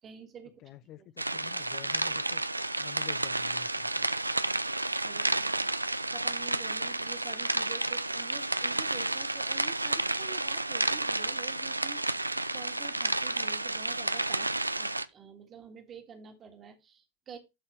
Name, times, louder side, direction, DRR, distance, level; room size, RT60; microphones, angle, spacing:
voice 1, 0.0-0.6 5.0-5.7 6.1-17.4, right 6 dB, 25° right, 1.7 m, -48 dB
voice 2, 0.6-2.4 2.8-4.1, left 12 dB, 35° left, 0.5 m, -49 dB
sound 1, 1.2-15.0, right 2 dB, 85° right, 0.3 m, -31 dB
12.0 x 4.1 x 3.1 m
figure-of-eight pair, 90°, 0 cm